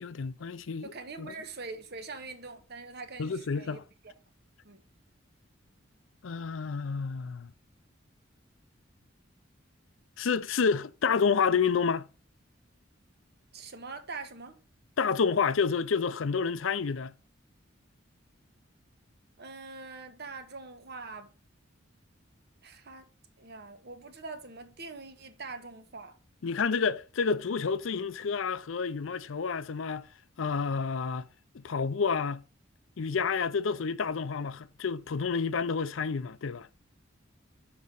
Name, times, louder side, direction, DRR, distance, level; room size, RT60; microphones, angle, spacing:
voice 1, 0.0-0.9 1.2-1.3 3.2-3.8 6.2-7.5 10.2-12.1 15.0-17.1 26.4-30.1 30.4-31.3 31.5-32.4 33.0-36.7, left 5 dB, 75° left, 0.5 m, -29 dB
voice 2, 0.8-3.8 4.0-4.1 4.6-4.8 13.5-14.6 19.4-21.3 22.6-23.1 23.4-26.1, right 3 dB, 55° right, 1.2 m, -43 dB
6.4 x 5.1 x 5.3 m
head